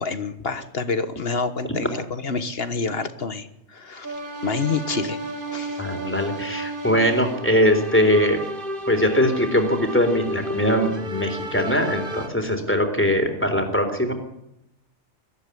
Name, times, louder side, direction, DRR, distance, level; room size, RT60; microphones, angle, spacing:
voice 1, 0.0-4.1 4.4-5.2 5.5-5.8, left 4 dB, 55° left, 11 dB, 1.6 m, -28 dB
sound 1, 4.0-12.3, right 1 dB, 45° right, 1.9 m, -32 dB
voice 2, 5.8-8.4 8.9-14.1, equal, 10° left, 5 dB, 3.8 m, -21 dB
22.0 x 14.5 x 10.0 m, 0.85 s
omnidirectional pair, 1.2 m